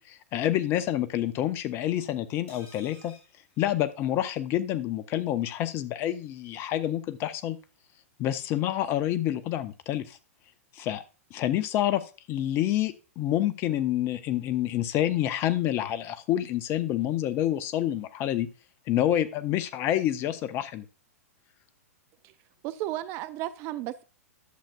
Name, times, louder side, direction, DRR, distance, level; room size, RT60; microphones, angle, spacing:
voice 1, 0.0-3.1 3.6-7.6 8.2-10.2 10.7-11.0 11.3-18.5 18.9-20.8, left 12 dB, 30° left, 0.7 m, -28 dB
sound 1, 2.5-4.4 4.7-4.8 5.1-5.2, left 2 dB, 50° left, 4.0 m, -55 dB
voice 2, 22.6-24.0, right 14 dB, 35° right, 0.5 m, -34 dB
11.5 x 7.3 x 2.4 m
figure-of-eight pair, 105°, 8 cm